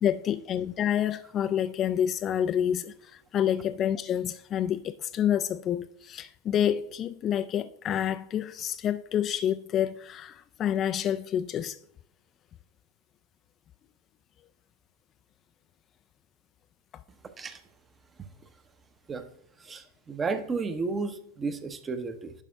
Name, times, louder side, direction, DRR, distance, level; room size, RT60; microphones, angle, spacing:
voice 1, 0.0-11.8, left 10 dB, 30° left, 0.3 m, -28 dB
voice 2, 19.7-22.3, right 4 dB, 20° right, 0.7 m, -32 dB
10.5 x 5.0 x 3.4 m
figure-of-eight pair, 90°, 0 cm